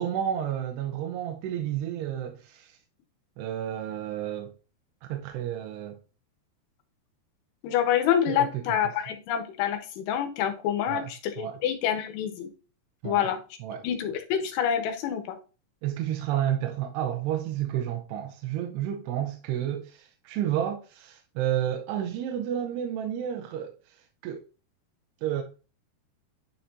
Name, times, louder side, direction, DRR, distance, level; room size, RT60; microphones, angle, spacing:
voice 1, 0.0-2.8 3.4-4.5 5.1-6.0 8.3-8.6 10.9-11.6 13.0-13.3 13.6-13.9 15.8-24.4 25.2-25.4, right 10 dB, 85° right, 2.7 m, -31 dB
voice 2, 7.6-12.5 13.0-13.4 13.8-15.4, left 9 dB, 85° left, 3.1 m, -27 dB
10.0 x 4.5 x 2.6 m
omnidirectional pair, 4.9 m